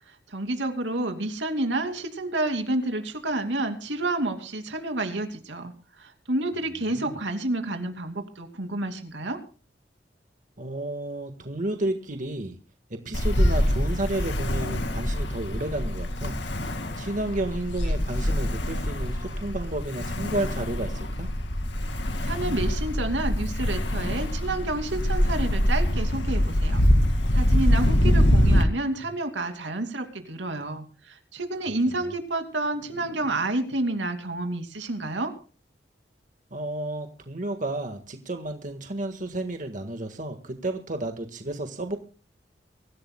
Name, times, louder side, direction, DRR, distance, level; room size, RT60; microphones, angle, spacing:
voice 1, 0.1-9.4 22.2-26.8 27.3-35.3, right 2 dB, 85° right, 5 dB, 2.8 m, -29 dB
voice 2, 10.6-12.6 12.9-16.4 16.6-21.3 36.5-42.0, right 1 dB, 45° right, 6 dB, 1.6 m, -32 dB
Ocean, 13.1-28.6, equal, 75° left, 2.2 m, -24 dB
24.0 x 15.5 x 2.3 m, 0.36 s
head